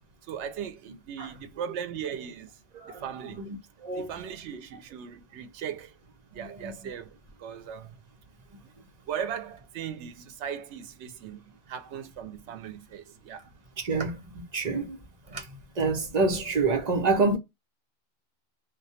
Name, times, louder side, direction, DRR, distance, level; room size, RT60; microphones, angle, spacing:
voice 1, 0.3-2.6 2.9-3.4 3.9-6.0 6.3-7.9 8.6-8.7 9.1-11.4 11.7-13.5, right 8 dB, 90° right, 0.9 m, -38 dB
voice 2, 2.7-4.1 6.3-6.9 13.8-17.4, right 3 dB, 45° right, 0.8 m, -28 dB
2.3 x 2.2 x 2.7 m
omnidirectional pair, 1.1 m